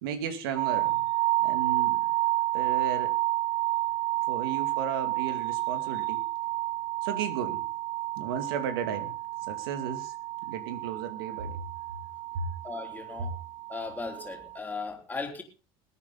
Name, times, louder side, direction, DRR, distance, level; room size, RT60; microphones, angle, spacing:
voice 1, 0.0-1.1 1.4-2.1 2.5-3.1 4.3-6.2 7.0-7.6 8.2-9.1 9.5-10.1 10.4-11.6 12.3-12.5 13.2-13.3, right 7 dB, 90° right, 8 dB, 2.3 m, -34 dB
sound 1, 0.6-14.6, right 16 dB, 65° right, 0.7 m, -30 dB
voice 2, 12.6-13.3 13.7-15.4, left 4 dB, 15° left, 2 dB, 3.3 m, -37 dB
21.5 x 8.7 x 3.8 m, 0.34 s
supercardioid pair, 110°, 12 cm